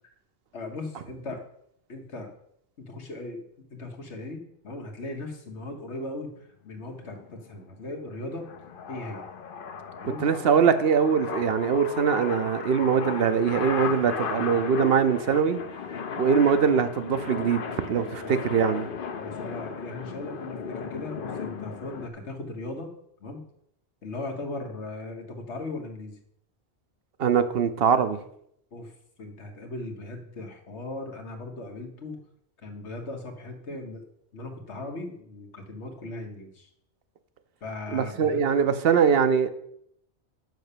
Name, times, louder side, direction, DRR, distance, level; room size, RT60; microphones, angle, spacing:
voice 1, 0.5-1.4 1.9-2.3 2.8-3.4 3.7-8.5 8.9-9.2 10.0-10.2 18.2-18.3 19.2-22.9 23.2-23.4 24.0-26.1 28.7-28.9 29.2-32.2 32.6-34.0 34.3-36.7 37.6-38.5, left 2 dB, 80° left, 1.6 m, -38 dB
sound 1, 6.8-22.1, left 6 dB, 55° left, 0.8 m, -36 dB
voice 2, 10.2-15.6 16.2-18.9 27.2-28.2 37.9-39.5, right 6 dB, 65° right, 0.8 m, -22 dB
6.5 x 5.6 x 6.8 m
omnidirectional pair, 1.1 m